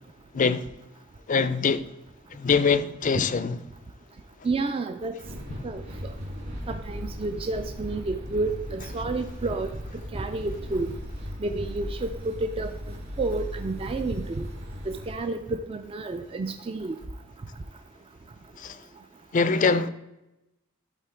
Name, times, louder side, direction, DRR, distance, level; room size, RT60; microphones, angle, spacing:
voice 1, 1.3-1.8 2.4-3.6 18.6-18.7 19.3-19.9, left 5 dB, 40° left, 0.4 m, -23 dB
voice 2, 4.4-5.2 5.6-5.8 6.7-9.7 10.1-10.9 11.4-12.7 13.2-14.5 14.9-16.9, right 3 dB, 25° right, 0.3 m, -30 dB
sound 1, 5.2-15.2, equal, 50° right, 2.2 m, -37 dB
11.5 x 4.1 x 4.4 m
head